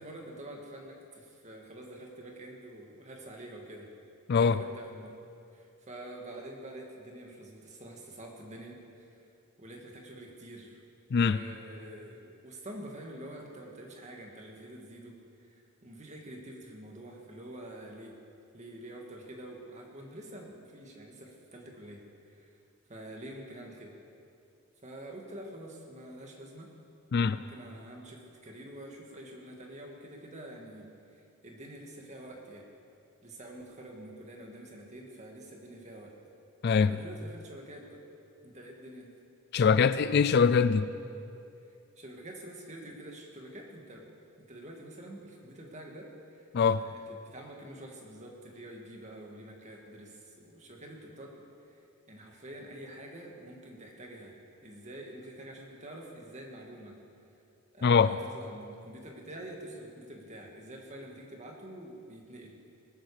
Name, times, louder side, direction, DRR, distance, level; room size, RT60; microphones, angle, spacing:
voice 1, 0.0-3.9 4.4-5.1 5.5-9.3 9.6-10.8 11.1-15.2 15.5-18.2 18.5-22.0 22.3-22.6 22.9-23.9 24.8-26.7 27.2-32.7 33.2-36.1 36.9-38.0 38.4-39.1 42.0-44.1 44.4-46.4 46.7-57.0 57.7-62.6, right 1 dB, 35° right, 0 dB, 2.1 m, -47 dB
voice 2, 36.6-37.0 39.5-40.9 46.5-46.8 57.8-58.2, left 5 dB, 50° left, 14 dB, 0.4 m, -23 dB
19.5 x 12.0 x 5.0 m, 2.6 s
head